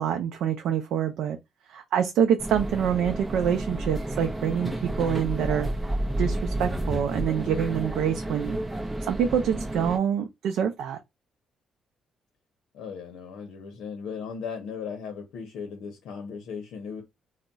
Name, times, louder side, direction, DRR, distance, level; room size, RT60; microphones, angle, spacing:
voice 1, 0.0-1.4 1.7-5.7 6.2-8.6 9.1-11.0, right 8 dB, 80° right, 0.4 m, -26 dB
sound 1, 2.4-10.0, right 1 dB, 15° right, 0.6 m, -31 dB
voice 2, 12.7-17.0, left 6 dB, 85° left, 0.6 m, -37 dB
2.2 x 2.0 x 3.8 m
cardioid pair, 90°, 0 cm